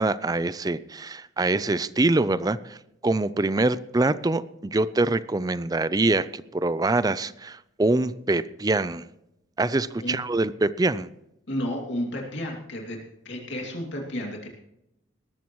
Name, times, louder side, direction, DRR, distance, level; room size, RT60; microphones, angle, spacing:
voice 1, 0.0-2.8 3.0-9.1 9.6-11.1, right 2 dB, 20° right, 16 dB, 0.4 m, -24 dB
voice 2, 11.5-13.0 13.2-14.5, left 1 dB, 65° left, -1 dB, 2.6 m, -32 dB
19.5 x 13.5 x 3.1 m, 0.84 s
head